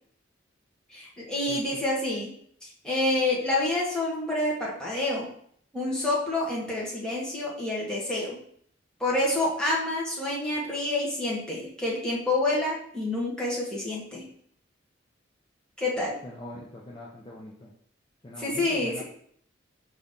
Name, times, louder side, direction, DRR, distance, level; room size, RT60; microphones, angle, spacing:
voice 1, 0.9-2.3 2.6-5.3 5.7-8.4 9.0-14.3 15.8-16.2 18.4-19.0, left 2 dB, 5° left, -6 dB, 1.1 m, -28 dB
voice 2, 1.5-1.8 16.2-17.7 18.2-19.0, left 1 dB, 25° left, -5 dB, 0.6 m, -42 dB
4.8 x 2.7 x 3.6 m, 0.63 s
head